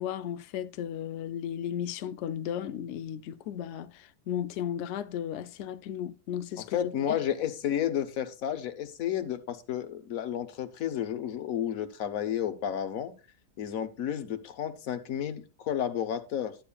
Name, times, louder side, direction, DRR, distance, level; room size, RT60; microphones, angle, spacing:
voice 1, 0.0-7.2, left 9 dB, 80° left, 0.6 m, -35 dB
voice 2, 6.7-13.1 13.6-16.6, left 10 dB, 55° left, 1.2 m, -31 dB
12.0 x 8.7 x 2.3 m
omnidirectional pair, 1.9 m